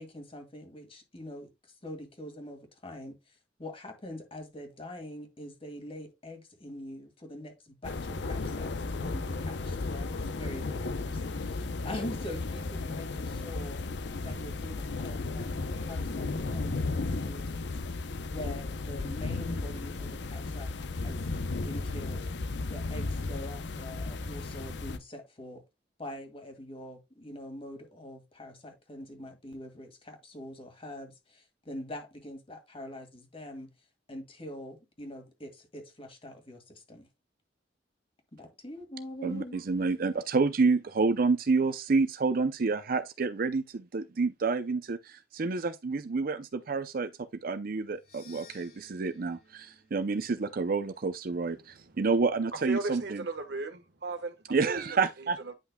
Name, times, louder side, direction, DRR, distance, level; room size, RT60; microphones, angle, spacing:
voice 1, 0.0-13.8 14.2-15.5 15.8-21.3 21.6-25.6 26.0-33.7 34.1-37.1 38.3-39.6, left 1 dB, 30° left, 2.1 m, -44 dB
sound 1, 7.8-25.0, left 3 dB, 70° left, 0.7 m, -34 dB
voice 2, 39.2-47.1 47.4-53.3 54.5-55.5, right 4 dB, 55° right, 0.5 m, -29 dB
sound 2, 47.9-52.3, left 4 dB, 55° left, 3.3 m, -59 dB
voice 3, 52.7-54.3 54.6-55.0, right 3 dB, 70° right, 1.3 m, -35 dB
9.9 x 5.7 x 2.2 m
head